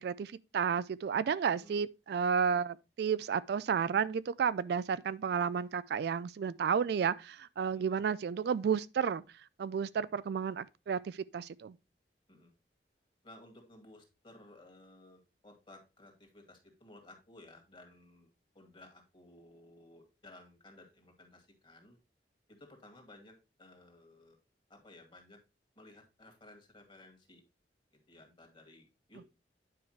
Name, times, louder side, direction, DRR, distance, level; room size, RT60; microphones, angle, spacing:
voice 1, 0.0-9.2 9.6-11.7, right 7 dB, 65° right, 0.3 m, -32 dB
voice 2, 13.2-18.3 18.5-22.0 22.5-24.4 24.7-25.4 25.8-27.4 28.1-29.3, left 1 dB, 30° left, 2.0 m, -57 dB
9.4 x 4.9 x 3.2 m
head